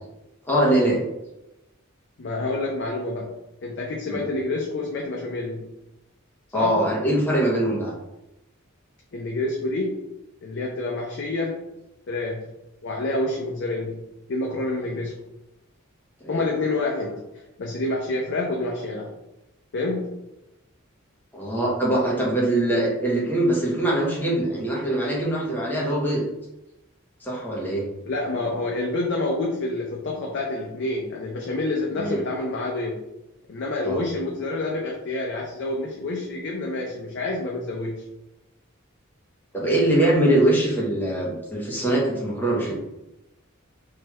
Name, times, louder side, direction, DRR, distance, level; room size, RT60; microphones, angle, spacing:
voice 1, 0.5-1.0 4.1-4.2 6.5-8.0 16.2-16.4 21.3-26.2 27.2-27.8 32.0-32.2 33.8-34.0 39.5-42.8, right 1 dB, 10° left, -4 dB, 0.8 m, -22 dB
voice 2, 2.2-3.3 3.6-5.7 6.5-6.9 9.1-10.0 10.4-11.6 12.1-12.5 12.8-14.0 14.3-15.2 16.3-19.1 19.7-20.2 28.1-33.0 33.5-38.0, left 2 dB, 60° left, -1 dB, 0.5 m, -28 dB
3.2 x 3.1 x 2.2 m, 0.91 s
head